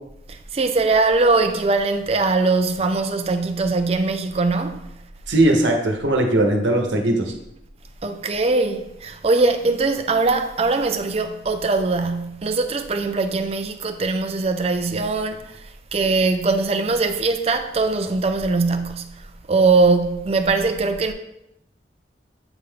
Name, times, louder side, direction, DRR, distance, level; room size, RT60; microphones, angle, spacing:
voice 1, 0.3-4.9 8.0-15.6 15.9-19.2 19.5-21.1, right 3 dB, 35° right, 0.4 m, -21 dB
voice 2, 5.3-7.3, right 1 dB, 85° right, 1.0 m, -19 dB
8.0 x 3.4 x 3.7 m
head